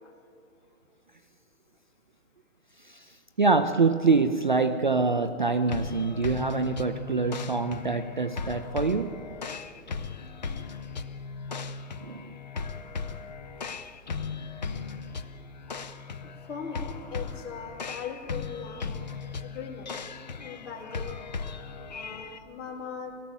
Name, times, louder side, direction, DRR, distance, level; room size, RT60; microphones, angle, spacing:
voice 1, 3.4-9.2 12.0-12.3, right 4 dB, 35° right, 0.4 m, -25 dB
sound 1, 5.7-22.4, left 5 dB, 30° left, 0.5 m, -37 dB
voice 2, 16.2-18.8 19.4-19.9 20.3-21.2 21.9-23.1, left 6 dB, 55° left, 3.7 m, -39 dB
24.5 x 18.0 x 7.1 m
hypercardioid pair, 175°, 43 cm